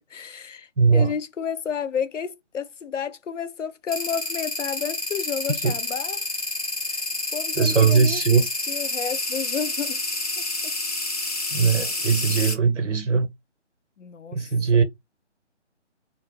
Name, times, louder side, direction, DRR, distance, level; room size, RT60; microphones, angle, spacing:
voice 1, 0.1-6.2 6.9-7.0 7.3-10.0 10.6-10.7 11.2-11.5 14.0-14.4, left 7 dB, 90° left, 0.5 m, -31 dB
voice 2, 0.8-1.1 5.6-5.8 7.5-8.4 11.5-13.3 14.3-14.8, right 5 dB, 80° right, 0.8 m, -20 dB
sound 1, 3.9-12.6, left 2 dB, 30° left, 0.6 m, -28 dB
2.4 x 2.1 x 3.2 m
figure-of-eight pair, 155°, 36 cm